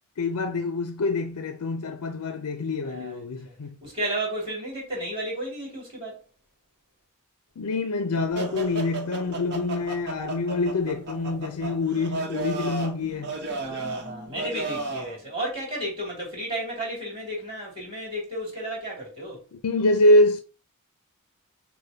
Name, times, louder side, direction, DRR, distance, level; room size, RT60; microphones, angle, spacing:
voice 1, 0.2-3.8 7.6-13.3 19.5-20.4, left 2 dB, 80° left, 0.5 m, -25 dB
voice 2, 2.8-3.5 3.8-6.2 13.6-19.5, right 1 dB, 25° right, 2.4 m, -33 dB
sound 1, 8.3-15.2, right 3 dB, 50° right, 1.0 m, -34 dB
6.6 x 2.2 x 2.7 m
head